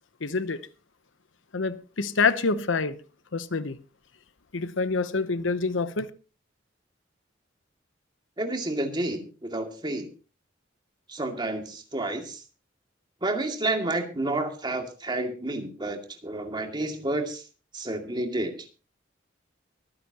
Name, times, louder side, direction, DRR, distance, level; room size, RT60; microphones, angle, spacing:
voice 1, 0.2-0.7 1.5-2.9 3.3-3.8 4.5-6.1, left 4 dB, 85° left, 0.9 m, -26 dB
voice 2, 8.4-10.1 11.1-12.4 13.2-17.4 17.7-18.6, right 2 dB, 25° right, 2.3 m, -30 dB
24.0 x 10.0 x 2.9 m
head